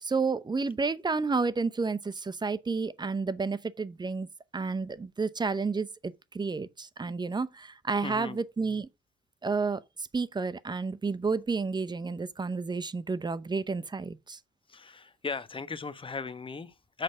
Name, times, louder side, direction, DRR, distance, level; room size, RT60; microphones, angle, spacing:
voice 1, 0.0-4.3 4.5-8.9 9.4-9.8 10.1-14.4, right 4 dB, 20° right, 0.7 m, -31 dB
voice 2, 8.0-8.4 14.7-17.0, left 4 dB, 25° left, 1.0 m, -37 dB
6.7 x 4.7 x 6.7 m
cardioid pair, 90°, 20 cm